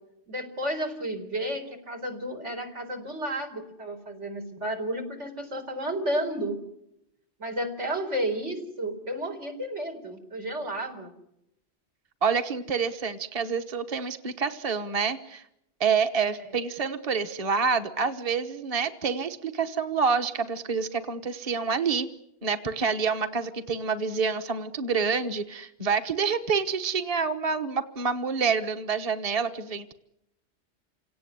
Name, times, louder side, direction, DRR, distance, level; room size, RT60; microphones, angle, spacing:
voice 1, 0.3-6.6 7.4-11.1, right 1 dB, 85° right, 3 dB, 4.5 m, -32 dB
voice 2, 12.2-15.4 15.8-22.1 22.4-29.9, right 5 dB, 35° right, 7 dB, 1.2 m, -27 dB
28.0 x 18.0 x 9.8 m, 0.82 s
omnidirectional pair, 1.2 m